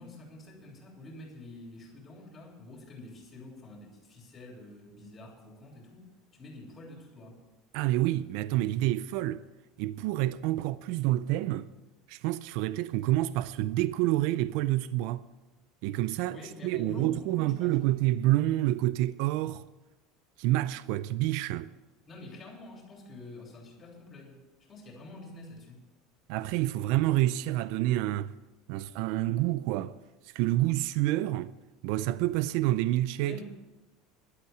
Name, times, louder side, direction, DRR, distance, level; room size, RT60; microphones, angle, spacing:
voice 1, 0.0-7.4 16.0-17.9 22.1-25.9 33.2-33.4, left 2 dB, 20° left, 3.2 m, -47 dB
voice 2, 7.7-9.4 9.8-11.7 12.1-15.2 15.8-16.4 16.6-19.6 20.4-21.7 26.3-28.3 28.7-29.9 30.3-31.5 31.8-33.4, right 15 dB, 55° right, 0.4 m, -28 dB
11.5 x 8.1 x 9.3 m
cardioid pair, 175°, 0 cm